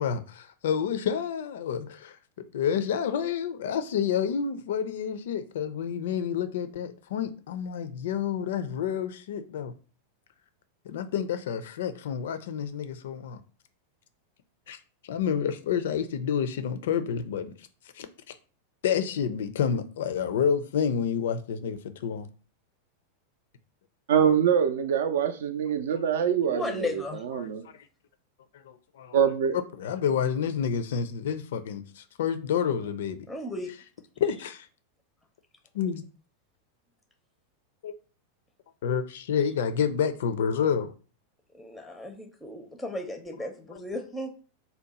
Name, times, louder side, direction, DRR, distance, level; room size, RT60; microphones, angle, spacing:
voice 1, 0.0-2.2 2.5-9.7 10.8-13.4 14.7-14.8 15.0-17.7 17.9-18.1 18.8-22.3 27.4-27.7 28.6-29.2 29.8-33.3 34.2-34.7 35.7-36.0 37.8-37.9 38.8-40.9, left 7 dB, 60° left, 0.4 m, -29 dB
voice 2, 24.1-27.0 27.3-27.6 29.1-29.6, right 8 dB, 60° right, 0.4 m, -24 dB
voice 3, 26.5-27.2 33.3-33.7 41.5-44.3, left 2 dB, 5° left, 0.5 m, -35 dB
2.8 x 2.1 x 4.0 m
figure-of-eight pair, 90°, 0 cm